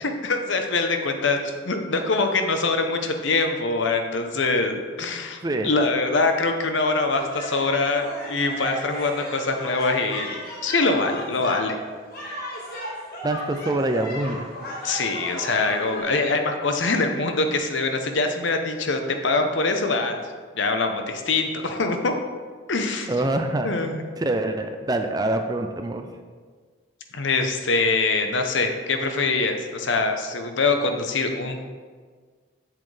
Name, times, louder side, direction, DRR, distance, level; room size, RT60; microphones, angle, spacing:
voice 1, 0.0-10.3 10.6-11.8 14.8-20.2 20.6-22.1 22.7-23.1 23.6-24.1 27.1-31.6, left 3 dB, 65° left, 5 dB, 0.8 m, -24 dB
sound 1, 7.1-16.0, equal, 50° left, 1.6 m, -35 dB
voice 2, 13.2-14.5 23.1-23.7 24.2-26.1, right 2 dB, 20° right, 6 dB, 0.4 m, -25 dB
7.6 x 7.4 x 3.3 m, 1.5 s
head